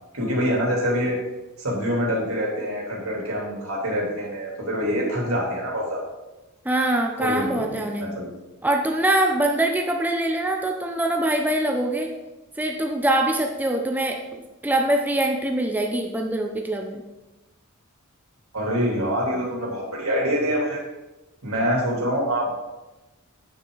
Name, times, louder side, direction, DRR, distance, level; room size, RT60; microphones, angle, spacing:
voice 1, 0.1-1.1 1.6-6.0 7.1-8.2 18.5-20.8 21.4-22.5, equal, 75° right, -3 dB, 3.3 m, -25 dB
voice 2, 6.6-8.1 8.6-12.1 12.6-14.2 14.6-17.0, right 1 dB, 10° right, 2 dB, 0.7 m, -23 dB
9.3 x 8.5 x 3.9 m, 1.1 s
head